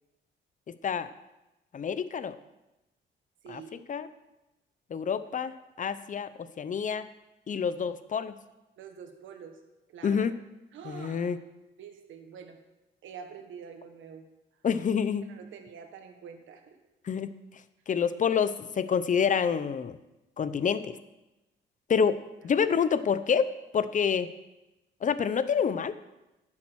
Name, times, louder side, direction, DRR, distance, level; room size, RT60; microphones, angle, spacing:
voice 1, 1.7-2.3 3.5-3.6 3.9-4.1 4.9-6.3 6.6-7.0 7.5-8.3 10.0-10.3 10.8-11.4 14.6-15.3 17.1-17.3 17.9-20.0 20.4-21.0 21.9-24.3 25.0-25.9, left 7 dB, 40° left, 14 dB, 0.7 m, -27 dB
voice 2, 3.4-3.9 8.8-9.6 9.9-10.3 10.7-11.3 11.8-12.6 13.0-14.2 15.2-16.8 22.5-22.7, right 7 dB, 80° right, 5 dB, 1.5 m, -46 dB
10.5 x 7.6 x 6.3 m, 0.99 s
cardioid pair, 90°, 20 cm